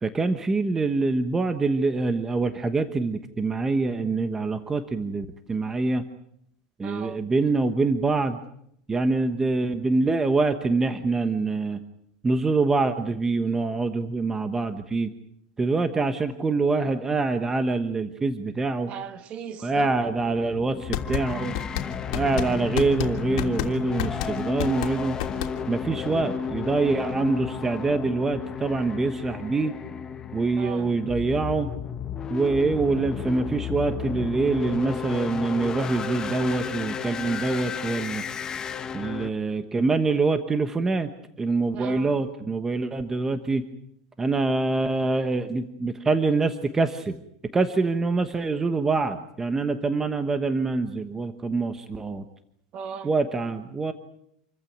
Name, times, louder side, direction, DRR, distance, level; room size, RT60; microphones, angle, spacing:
voice 1, 0.0-6.0 6.8-8.4 8.9-11.8 12.2-15.1 15.6-18.9 19.6-21.6 22.1-25.2 25.7-29.7 30.3-31.7 32.3-38.2 38.9-41.1 41.4-43.6 44.2-47.2 47.5-52.2 53.0-53.9, right 3 dB, 15° right, 9 dB, 1.1 m, -25 dB
voice 2, 6.8-7.3 18.9-19.9 30.6-30.9 41.7-42.2 52.7-53.1, right 7 dB, 35° right, 10 dB, 1.9 m, -38 dB
sound 1, 19.8-39.3, left 7 dB, 20° left, 1.3 m, -33 dB
sound 2, 20.7-25.9, left 12 dB, 65° left, 3.2 m, -31 dB
28.0 x 15.0 x 9.3 m, 0.74 s
supercardioid pair, 155°, 3 cm